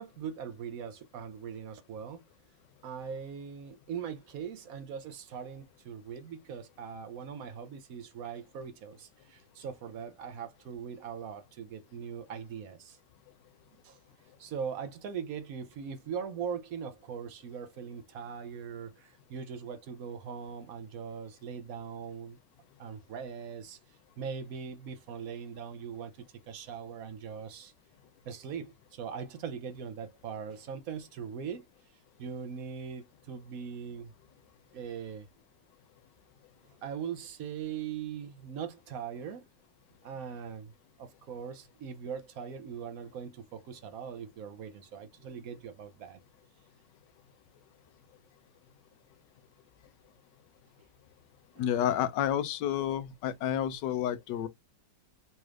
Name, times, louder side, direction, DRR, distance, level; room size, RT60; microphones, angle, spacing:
voice 1, 0.0-2.2 2.8-13.0 13.8-14.0 14.4-22.4 22.8-23.8 24.2-26.1 26.5-27.7 28.2-31.7 32.2-34.1 34.7-35.3 36.8-39.4 40.0-40.7 41.0-46.2, right 7 dB, 65° right, 0.9 m, -40 dB
voice 2, 51.6-54.5, left 10 dB, 80° left, 1.2 m, -30 dB
4.0 x 3.1 x 2.4 m
omnidirectional pair, 1.9 m